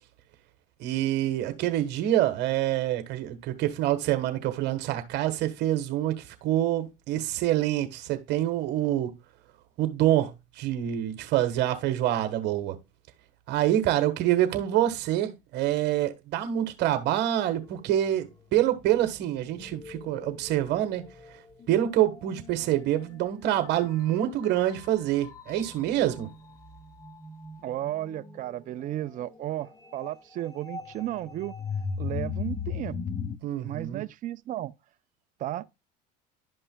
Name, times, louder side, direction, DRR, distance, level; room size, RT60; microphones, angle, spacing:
voice 1, 0.8-9.1 9.8-12.8 13.5-21.0 21.7-26.3 33.4-34.0, right 12 dB, 55° right, 1.4 m, -26 dB
sound 1, 17.6-18.0 18.8-33.4, left 6 dB, 15° left, 0.9 m, -40 dB
voice 2, 27.6-31.5 32.0-33.0 33.6-34.7 35.4-35.6, right 13 dB, 40° right, 0.5 m, -34 dB
11.0 x 5.4 x 2.2 m
supercardioid pair, 100°, 21 cm